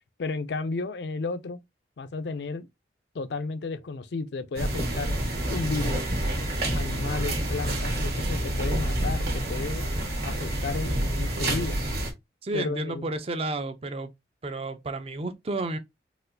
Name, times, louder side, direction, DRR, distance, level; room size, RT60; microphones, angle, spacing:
voice 1, 0.2-1.6 2.0-2.7 3.1-5.2 5.5-6.1 6.7-9.9 10.2-11.8 12.5-13.1, left 3 dB, 70° left, 0.4 m, -33 dB
sound 1, 4.5-12.1, right 1 dB, 60° right, 1.4 m, -28 dB
voice 2, 12.4-14.1 14.4-15.8, right 2 dB, 35° right, 0.4 m, -31 dB
4.1 x 2.4 x 2.6 m
head